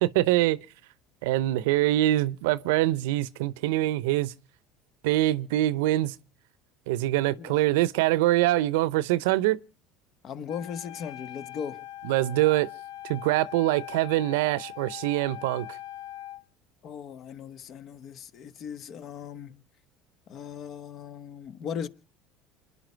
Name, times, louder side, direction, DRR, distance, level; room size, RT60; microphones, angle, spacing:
voice 1, 0.0-0.6 1.2-4.3 5.0-6.1 6.9-9.6 12.0-12.7 13.0-15.7, right 16 dB, 75° right, 0.7 m, -24 dB
voice 2, 7.3-7.7 10.2-11.9 16.8-19.6 20.3-21.9, left 7 dB, 55° left, 1.3 m, -38 dB
Wind instrument woodwind instrument, 10.5-16.4, left 13 dB, 75° left, 1.2 m, -42 dB
28.0 x 10.0 x 4.5 m
hypercardioid pair, 70°, 0 cm